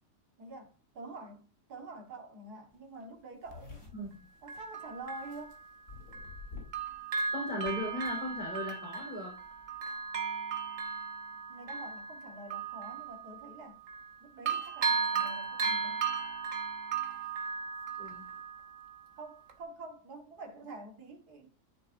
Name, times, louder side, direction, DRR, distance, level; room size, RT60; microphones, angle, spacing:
voice 1, 0.4-3.8 4.4-5.6 11.5-13.8 14.2-16.1 19.2-21.5, right 2 dB, 75° right, 2.2 m, -47 dB
sound 1, 2.7-2.8 3.0-5.4 5.9-6.9 7.2-7.7, left 4 dB, 55° left, 5.3 m, -48 dB
Bell, 3.5-3.6 4.5-6.4 6.7-14.2 14.5-19.1 19.5-19.6, right 5 dB, 55° right, 1.5 m, -36 dB
voice 2, 3.9-4.3 7.3-9.4 18.0-18.3, left 1 dB, 5° left, 5.5 m, -37 dB
14.0 x 6.4 x 2.7 m
omnidirectional pair, 1.7 m